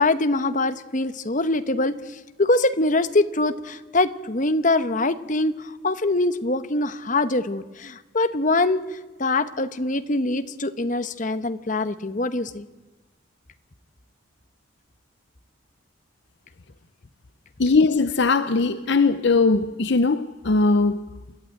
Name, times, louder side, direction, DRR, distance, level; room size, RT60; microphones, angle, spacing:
voice 1, 0.0-12.7, left 2 dB, 40° left, 1.0 m, -23 dB
voice 2, 17.6-21.1, left 3 dB, 55° left, 0.6 m, -20 dB
28.5 x 12.0 x 9.4 m
head